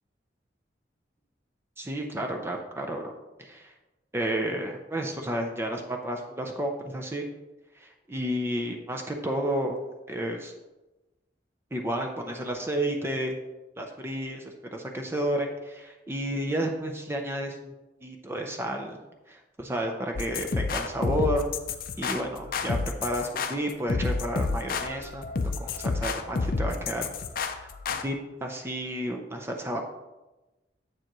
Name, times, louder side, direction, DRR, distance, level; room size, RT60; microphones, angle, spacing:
voice 1, 1.8-3.0 3.4-3.7 4.1-7.2 7.8-9.8 10.1-10.5 11.7-13.4 13.8-17.7 18.0-19.0 19.3-21.4 22.0-25.2 25.6-27.1 27.5-29.8, right 1 dB, 15° right, 2 dB, 0.6 m, -31 dB
sound 1, 20.2-28.0, left 4 dB, 50° left, 0.5 m, -30 dB
7.6 x 6.9 x 3.0 m, 1.1 s
head